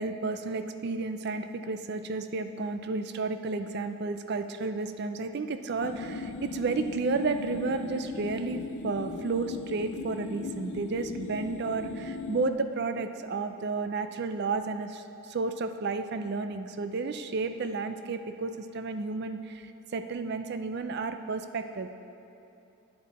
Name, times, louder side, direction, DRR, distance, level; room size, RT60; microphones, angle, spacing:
voice 1, 0.0-21.9, right 3 dB, 50° right, 9 dB, 0.4 m, -32 dB
sound 1, 5.8-12.5, left 3 dB, 65° left, 0.4 m, -38 dB
11.5 x 8.8 x 4.1 m, 2.8 s
head